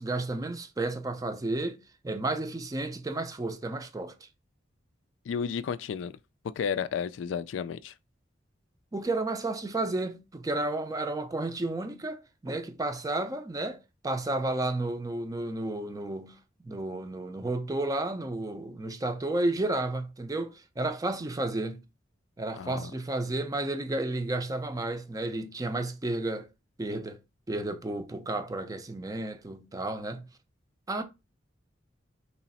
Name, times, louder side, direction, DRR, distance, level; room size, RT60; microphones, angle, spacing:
voice 1, 0.0-4.3 8.9-16.4 16.6-21.8 22.4-26.5 26.8-27.2 27.5-30.3 30.9-31.0, right 2 dB, 20° right, 0.4 m, -32 dB
voice 2, 5.3-6.1 6.6-7.9 22.6-22.9, left 7 dB, 85° left, 0.3 m, -32 dB
3.1 x 2.9 x 4.1 m
head